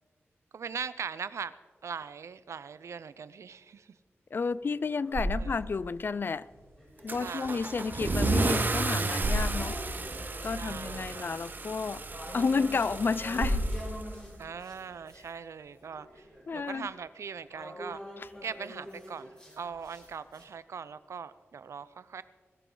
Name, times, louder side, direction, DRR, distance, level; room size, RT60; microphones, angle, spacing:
voice 1, 0.5-1.5 1.8-3.9 5.4-5.7 7.2-7.7 10.4-11.3 14.4-16.3 16.5-18.0 18.4-22.2, right 6 dB, 90° right, 0.6 m, -40 dB
voice 2, 4.3-6.5 7.0-9.8 10.4-12.0 12.3-13.7 16.5-16.9 18.2-18.3, left 4 dB, 50° left, 0.3 m, -31 dB
sound 1, 4.5-5.9 6.4-15.3 15.7-20.4, equal, 20° left, 4.3 m, -47 dB
sound 2, 4.7-15.8, equal, 70° right, 3.5 m, -38 dB
Car / Engine starting / Accelerating revving vroom, 7.1-14.4, right 3 dB, 40° right, 1.1 m, -33 dB
21.5 x 14.0 x 3.9 m
wide cardioid pair, 125°, 5 cm